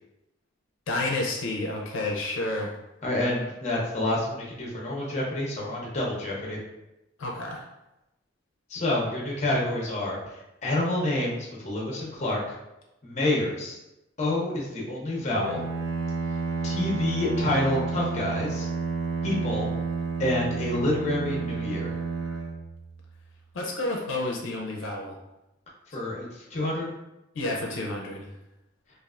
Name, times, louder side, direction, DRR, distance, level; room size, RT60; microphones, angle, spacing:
voice 1, 0.9-2.7 7.2-7.6 23.5-25.1 27.3-28.3, left 2 dB, 80° left, -1 dB, 0.5 m, -30 dB
voice 2, 3.0-6.6 8.7-10.2 10.6-12.6 13.0-13.8 14.2-15.6 16.6-18.7 19.2-19.7 20.2-21.9 25.9-27.0, left 1 dB, 35° left, -3 dB, 0.7 m, -28 dB
Bowed string instrument, 15.3-23.3, right 4 dB, 65° right, 0.4 m, -31 dB
3.3 x 2.4 x 2.4 m, 0.94 s
head